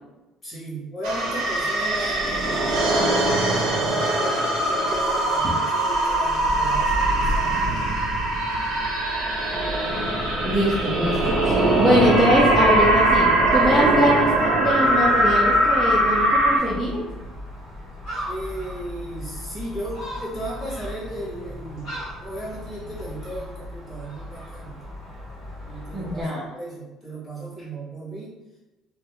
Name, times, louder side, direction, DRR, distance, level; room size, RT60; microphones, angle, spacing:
voice 1, 0.4-7.9 18.3-24.8 25.7-28.3, right 1 dB, 20° left, -7 dB, 0.9 m, -35 dB
sound 1, 1.0-16.6, right 1 dB, 70° right, 0.6 m, -21 dB
voice 2, 10.0-17.0 25.9-26.4, equal, 5° right, -9 dB, 0.5 m, -22 dB
Gull seagull, 14.8-26.2, left 1 dB, 60° left, 1.0 m, -37 dB
2.4 x 2.3 x 2.8 m, 1.1 s
cardioid pair, 175°, 0 cm